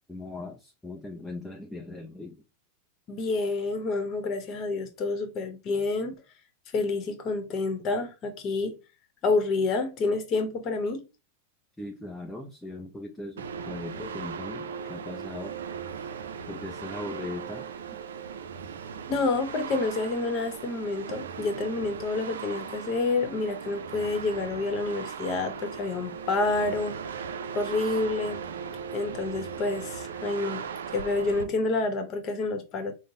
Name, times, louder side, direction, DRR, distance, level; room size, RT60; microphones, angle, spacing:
voice 1, 0.0-2.4 11.8-15.5 16.5-17.7, left 2 dB, 5° left, 0.6 m, -39 dB
voice 2, 3.1-6.2 6.7-8.8 9.2-11.0 19.1-27.0 27.5-28.4 28.9-30.6 30.9-32.9, left 3 dB, 40° left, 0.9 m, -28 dB
sound 1, 13.4-31.4, right 7 dB, 80° right, 0.4 m, -38 dB
3.8 x 2.1 x 3.7 m
hypercardioid pair, 105°, 0 cm